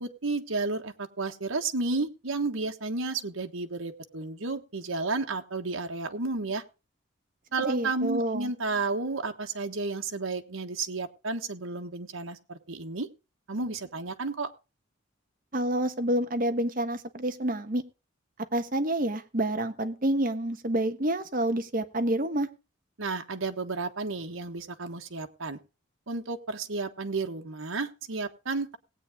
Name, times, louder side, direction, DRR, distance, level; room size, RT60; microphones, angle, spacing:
voice 1, 0.0-6.6 7.5-13.1 13.5-14.5 23.0-25.6 26.1-28.8, right 3 dB, 85° right, 4 dB, 1.4 m, -32 dB
voice 2, 7.7-8.5 15.5-17.8 18.5-22.5, right 1 dB, 40° right, 8 dB, 1.3 m, -28 dB
19.0 x 8.8 x 3.6 m, 0.30 s
head